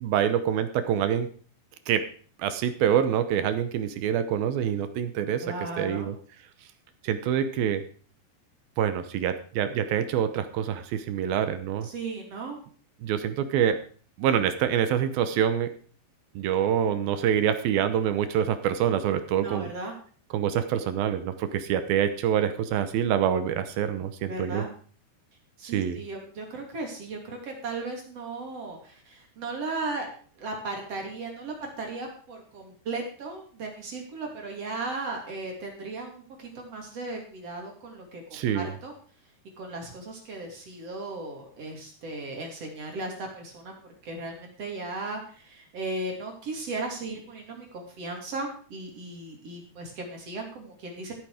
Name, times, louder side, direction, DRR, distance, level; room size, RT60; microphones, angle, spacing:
voice 1, 0.0-1.3 1.9-2.0 2.4-5.5 5.8-6.1 7.0-7.8 8.8-11.9 13.0-13.8 14.2-15.7 16.4-19.7 20.3-24.6 25.6-26.0 38.3-38.7, right 9 dB, 70° right, 10 dB, 2.5 m, -26 dB
voice 2, 5.4-6.1 11.8-12.6 19.4-19.9 24.3-24.7 25.6-30.1 30.4-38.9 39.6-43.7 44.0-51.1, right 3 dB, 40° right, 1 dB, 3.5 m, -36 dB
14.0 x 9.1 x 5.0 m, 0.43 s
omnidirectional pair, 4.8 m